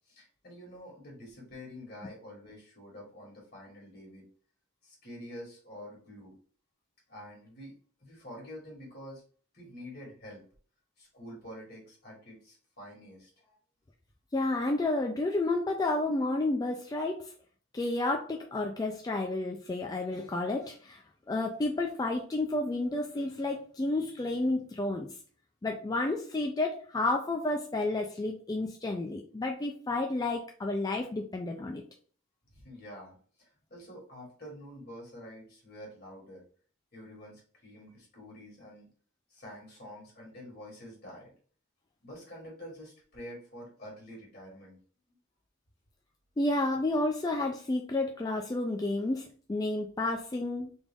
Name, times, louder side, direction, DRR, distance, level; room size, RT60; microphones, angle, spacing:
voice 1, 0.1-4.3 4.8-6.3 7.1-9.2 9.5-10.4 11.0-13.6 32.5-36.4 36.9-38.9 39.3-41.3 42.0-44.8, equal, 50° left, -2 dB, 1.8 m, -47 dB
voice 2, 14.3-17.2 17.7-21.0 21.3-25.1 25.6-31.8 46.4-50.7, left 2 dB, 20° left, 2 dB, 0.3 m, -31 dB
3.5 x 2.4 x 3.5 m, 0.43 s
head